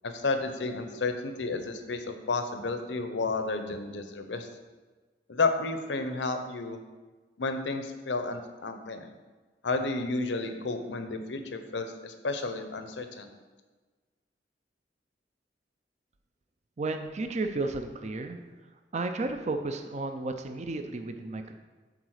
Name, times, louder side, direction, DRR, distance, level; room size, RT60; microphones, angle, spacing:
voice 1, 0.0-4.5 5.3-6.8 7.4-9.1 9.6-13.3, left 3 dB, 80° left, 7 dB, 0.8 m, -31 dB
voice 2, 16.8-18.4 18.9-21.6, right 3 dB, 40° right, 6 dB, 0.5 m, -33 dB
8.6 x 4.0 x 6.5 m, 1.3 s
head